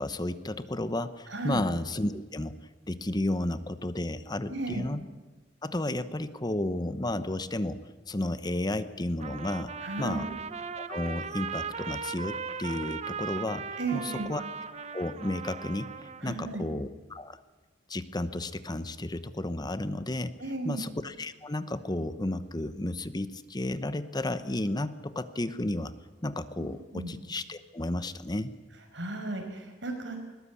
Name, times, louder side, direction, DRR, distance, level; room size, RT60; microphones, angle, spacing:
voice 1, 0.0-2.5 2.9-5.0 5.6-7.8 8.1-9.7 10.0-10.3 10.8-14.4 14.9-17.4 17.9-20.4 20.6-25.9 26.2-28.5, left 1 dB, 25° left, 12 dB, 0.9 m, -32 dB
voice 2, 1.3-1.6 4.5-4.9 9.8-10.3 13.8-14.4 16.2-16.7 20.4-20.8 26.6-27.1 28.9-30.2, right 3 dB, 80° right, 4 dB, 5.5 m, -34 dB
Trumpet, 9.2-16.3, right 6 dB, 35° right, 1.0 m, -38 dB
21.0 x 19.5 x 8.5 m, 1.2 s
head